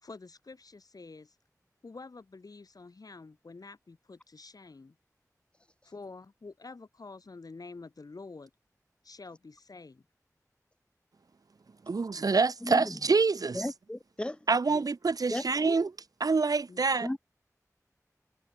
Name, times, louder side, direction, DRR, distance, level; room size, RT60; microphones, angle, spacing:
voice 1, 0.0-1.4 1.8-5.0 5.8-8.5 9.0-10.0 14.5-14.8 16.7-16.8, left 3 dB, 90° left, 3.5 m, -48 dB
voice 2, 11.9-13.6 14.5-15.9 16.2-17.1, right 4 dB, 85° right, 0.6 m, -26 dB
voice 3, 12.6-13.0 13.5-14.4 15.3-15.8 17.0-17.2, left 1 dB, 15° left, 1.1 m, -35 dB
wide cardioid pair, 65°, 6 cm